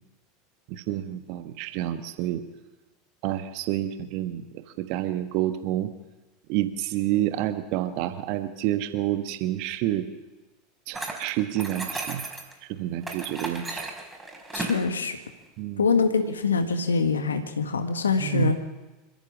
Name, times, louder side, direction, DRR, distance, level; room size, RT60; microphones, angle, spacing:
voice 1, 0.7-2.4 3.2-5.9 6.5-10.1 10.9-12.2 12.6-13.8 15.6-15.9 18.2-18.5, right 13 dB, 50° right, 9 dB, 1.5 m, -29 dB
sound 1, 10.9-12.5 13.0-14.8, right 3 dB, 15° right, 5.2 m, -35 dB
voice 2, 14.5-15.2 15.8-18.6, left 5 dB, 80° left, 7 dB, 1.7 m, -24 dB
27.0 x 15.0 x 7.3 m, 1.1 s
figure-of-eight pair, 80°, 0 cm